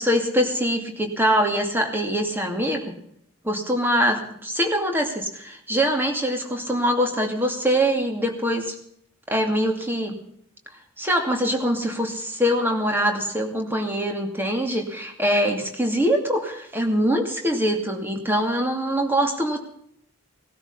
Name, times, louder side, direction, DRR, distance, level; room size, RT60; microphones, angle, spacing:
voice 1, 0.0-2.9 3.4-8.8 9.3-10.2 11.0-19.6, equal, 10° right, 3 dB, 2.5 m, -23 dB
19.0 x 13.0 x 5.5 m, 0.71 s
head